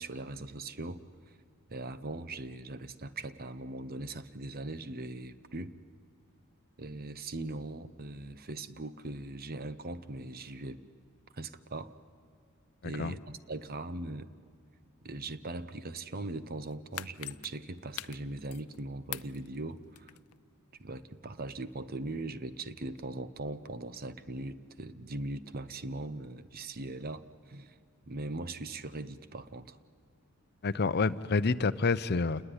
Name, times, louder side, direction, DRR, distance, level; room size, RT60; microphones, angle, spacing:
voice 1, 0.0-1.4 1.7-5.7 6.8-10.8 11.3-11.9 12.8-14.3 15.0-20.2 20.8-27.8 28.1-29.8, right 2 dB, 45° right, 13 dB, 0.9 m, -40 dB
voice 2, 12.8-13.1 30.6-32.4, left 4 dB, 50° left, 14 dB, 0.6 m, -28 dB
sound 1, 16.6-18.8 19.1-20.4 20.7-20.8, left 14 dB, 90° left, 0.6 m, -43 dB
28.5 x 20.0 x 9.8 m, 2.3 s
head